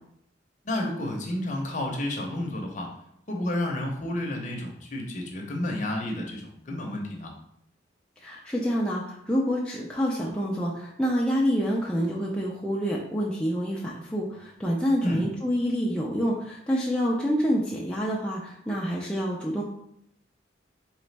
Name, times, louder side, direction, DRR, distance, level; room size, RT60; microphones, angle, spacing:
voice 1, 0.6-2.9 3.3-7.3 15.0-15.2, left 1 dB, 40° left, 1 dB, 0.7 m, -31 dB
voice 2, 8.2-19.6, equal, 5° left, -5 dB, 0.4 m, -27 dB
4.0 x 3.1 x 3.3 m, 0.74 s
head